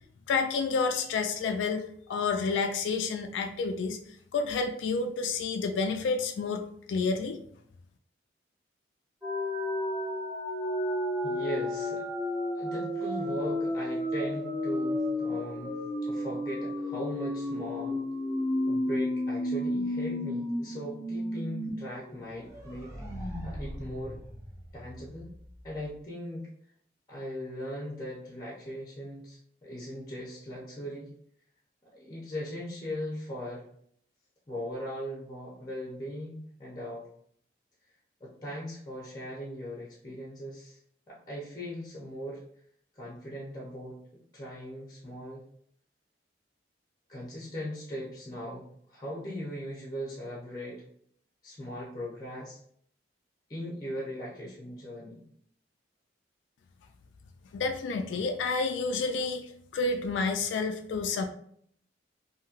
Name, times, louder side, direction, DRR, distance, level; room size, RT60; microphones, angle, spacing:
voice 1, 0.3-4.0 4.3-6.6 6.9-7.4 57.5-61.3, left 4 dB, 80° left, 5 dB, 0.3 m, -29 dB
sound 1, 9.2-21.7 22.0-22.1 22.5-25.2, left 1 dB, 15° right, 0.7 m, -32 dB
voice 2, 11.2-12.0 12.5-18.0 18.7-22.9 23.2-24.2 24.7-25.3 25.6-26.5 27.1-31.1 31.9-33.7 34.5-37.1 38.2-40.8 41.1-42.4 42.9-44.0 44.3-45.4 47.1-50.8 51.4-52.6 53.5-55.2, equal, 20° left, -4 dB, 0.6 m, -39 dB
2.9 x 2.7 x 2.4 m, 0.64 s
head